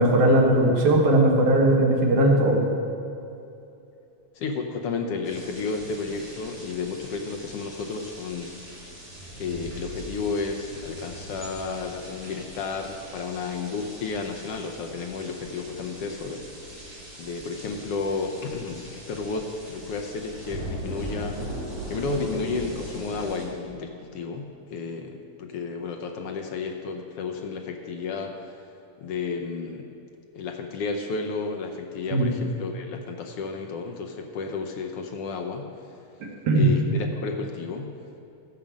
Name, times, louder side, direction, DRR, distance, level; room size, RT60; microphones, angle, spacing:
voice 1, 0.0-2.7 32.1-32.3 36.2-36.7, right 1 dB, 75° right, -1 dB, 2.8 m, -19 dB
voice 2, 4.3-8.5 9.4-16.9 17.2-21.4 21.9-28.7 29.0-29.9 30.3-35.7 36.5-37.9, left 4 dB, 80° left, 3 dB, 1.3 m, -32 dB
sound 1, 5.2-23.4, right 1 dB, 10° right, 2.7 m, -40 dB
14.0 x 5.2 x 7.3 m, 2.7 s
omnidirectional pair, 3.5 m